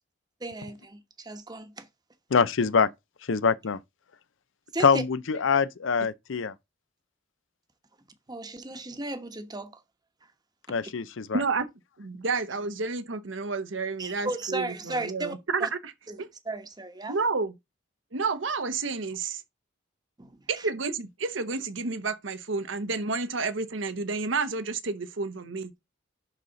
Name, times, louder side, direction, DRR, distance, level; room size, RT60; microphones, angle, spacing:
voice 1, 0.4-1.9 4.7-5.0 8.3-9.8 14.0-15.3 15.6-15.7 16.1-16.2 16.4-17.2 20.2-20.7, right 2 dB, 20° right, 1.0 m, -35 dB
voice 2, 2.3-2.9 3.3-3.8 4.8-6.5 10.7-11.4, left 5 dB, 80° left, 0.6 m, -24 dB
voice 3, 11.3-11.7 12.0-15.9 16.2-16.3 17.1-17.5 18.1-19.4 20.5-25.7, right 4 dB, 75° right, 0.9 m, -30 dB
11.0 x 4.1 x 3.9 m
head